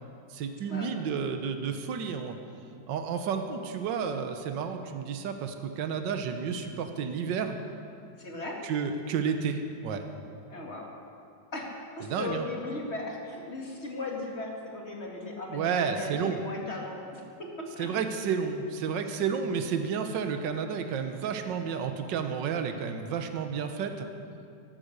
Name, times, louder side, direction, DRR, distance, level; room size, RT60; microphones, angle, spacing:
voice 1, 0.3-2.4 2.9-7.6 8.6-10.0 12.1-12.4 15.5-16.4 17.8-24.1, right 6 dB, 75° right, 6 dB, 1.6 m, -31 dB
voice 2, 8.2-8.6 10.5-10.9 11.5-17.9 19.0-19.2, left 2 dB, 35° left, -1 dB, 2.3 m, -37 dB
14.0 x 12.5 x 6.7 m, 2.5 s
omnidirectional pair, 2.0 m